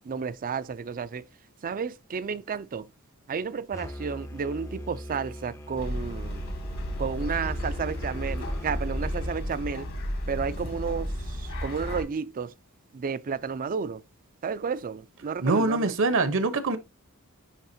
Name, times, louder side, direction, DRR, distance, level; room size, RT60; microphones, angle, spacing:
voice 1, 0.0-1.3 1.6-2.9 3.3-6.4 7.0-9.9 10.3-12.5 12.9-14.0 14.4-16.0, right 6 dB, 40° right, 0.4 m, -32 dB
Musical instrument, 3.7-9.4, left 1 dB, 15° left, 0.5 m, -39 dB
sound 1, 5.8-12.0, equal, 70° left, 2.0 m, -33 dB
voice 2, 15.4-16.8, right 3 dB, 60° right, 0.9 m, -24 dB
10.5 x 3.4 x 2.7 m
head